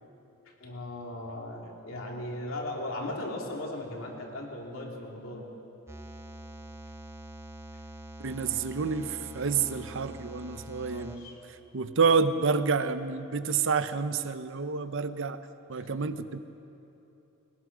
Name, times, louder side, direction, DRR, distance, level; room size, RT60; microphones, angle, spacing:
voice 1, 0.4-5.5 7.7-7.8 10.8-11.4 15.7-15.9, left 1 dB, 70° left, -1 dB, 3.2 m, -38 dB
sound 1, 5.9-11.2, equal, 15° right, 1.1 m, -45 dB
voice 2, 8.2-11.3 11.7-15.4 15.7-16.4, right 5 dB, 65° right, 12 dB, 0.8 m, -28 dB
21.5 x 19.5 x 6.2 m, 3.0 s
head